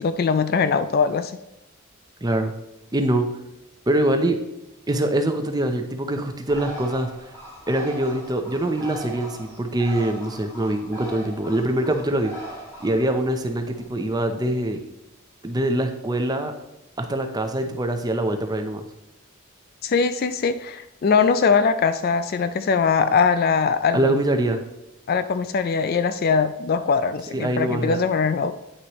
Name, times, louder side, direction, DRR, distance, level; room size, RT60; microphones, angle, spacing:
voice 1, 0.0-1.3 19.8-24.2 25.1-28.5, left 5 dB, 45° left, 11 dB, 0.3 m, -21 dB
voice 2, 2.2-2.5 2.9-3.3 3.9-4.4 4.9-7.3 7.7-12.3 12.8-14.8 15.4-16.5 17.0-18.8 23.9-24.6 27.3-28.0, right 1 dB, 20° right, 6 dB, 0.6 m, -24 dB
Bird, 6.5-13.9, right 1 dB, 15° left, 2.1 m, -39 dB
9.6 x 5.9 x 3.0 m, 0.92 s
head